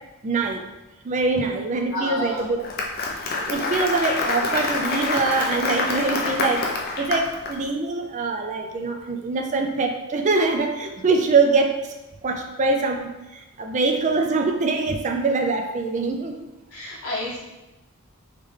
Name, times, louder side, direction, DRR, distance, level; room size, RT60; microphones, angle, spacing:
voice 1, 0.2-0.6 1.0-2.9 3.4-6.7 7.0-11.7 12.2-16.3, right 3 dB, 35° right, 4 dB, 0.4 m, -23 dB
voice 2, 1.9-2.4 16.7-17.4, left 2 dB, 75° left, -7 dB, 1.4 m, -30 dB
Applause, 2.4-7.5, left 3 dB, 45° left, 0.5 m, -26 dB
3.7 x 3.2 x 3.2 m, 1.0 s
head